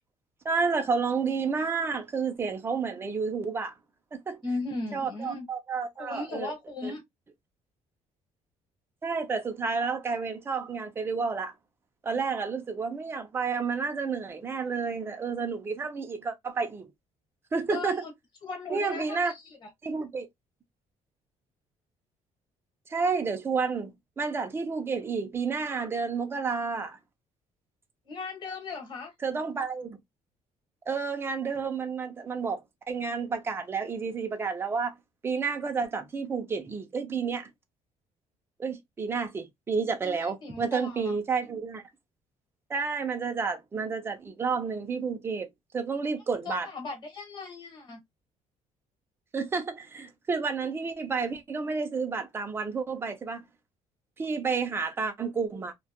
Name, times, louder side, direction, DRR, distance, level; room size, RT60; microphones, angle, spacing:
voice 1, 0.4-3.7 4.1-4.4 4.9-6.5 6.8-6.9 9.0-11.5 12.0-16.9 17.5-18.0 18.7-19.3 19.8-20.3 22.9-27.0 29.2-30.0 30.9-34.9 35.2-37.5 38.6-41.8 42.7-45.5 45.7-46.7 49.3-53.4 54.2-55.7, right 5 dB, 20° right, 0.5 m, -30 dB
voice 2, 4.4-5.5 6.0-7.0 17.7-18.1 18.4-19.7 28.0-29.1 40.0-41.2 46.4-48.0, left 3 dB, 35° left, 1.1 m, -37 dB
2.7 x 2.1 x 2.8 m
cardioid pair, 175°, 13 cm